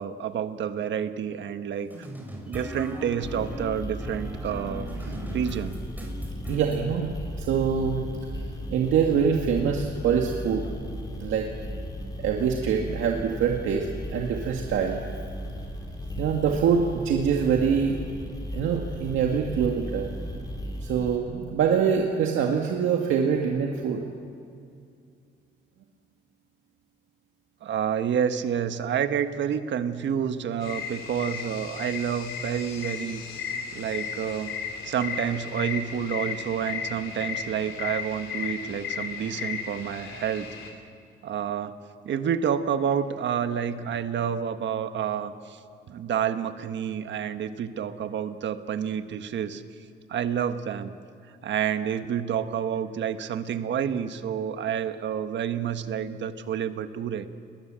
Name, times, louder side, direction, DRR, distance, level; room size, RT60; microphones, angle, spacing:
voice 1, 0.0-2.1 2.5-4.9 5.3-5.8 27.6-33.4 33.7-34.5 34.8-40.5 41.2-41.7 42.0-45.6 45.9-49.6 50.1-50.9 51.4-57.3, right 8 dB, 65° right, 9 dB, 1.5 m, -29 dB
sound 1, 1.9-6.8, equal, 10° right, 5.7 m, -38 dB
sound 2, 3.2-21.2, equal, 20° left, 4.4 m, -36 dB
voice 2, 6.5-8.0 8.7-10.7 11.2-11.5 12.2-13.9 14.1-15.0 16.2-18.0 18.5-20.1 20.8-24.0, right 7 dB, 85° right, 1 dB, 2.0 m, -24 dB
sound 3, 30.6-40.7, left 7 dB, 85° left, 3.2 m, -35 dB
29.5 x 21.0 x 7.6 m, 2.4 s
cardioid pair, 90°, 20 cm